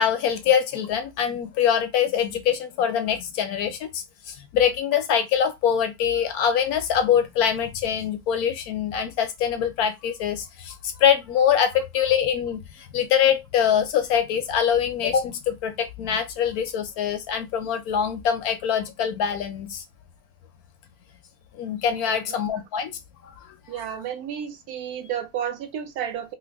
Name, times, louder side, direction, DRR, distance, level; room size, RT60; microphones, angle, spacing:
voice 1, 0.0-19.8 21.5-23.3, left 8 dB, 70° left, 1.0 m, -24 dB
voice 2, 23.7-26.3, right 9 dB, 70° right, 1.0 m, -31 dB
3.3 x 2.1 x 3.3 m
omnidirectional pair, 1.8 m